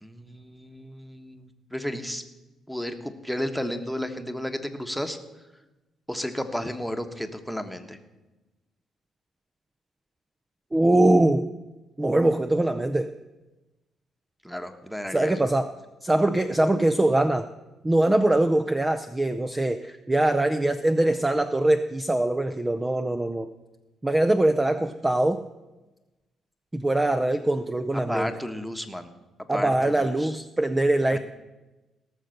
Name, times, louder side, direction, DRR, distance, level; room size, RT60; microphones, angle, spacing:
voice 1, 0.0-2.2 2.7-5.2 6.1-8.0 14.4-15.4 28.1-29.1 29.5-30.4 31.1-31.2, equal, ahead, 6 dB, 1.3 m, -33 dB
voice 2, 10.7-11.5 12.0-13.1 15.1-15.7 16.0-17.5 17.8-23.5 24.0-25.4 26.7-28.3 29.5-31.2, right 1 dB, 15° right, 9 dB, 0.6 m, -22 dB
17.5 x 6.6 x 6.5 m, 1.1 s
cardioid pair, 90°, 0 cm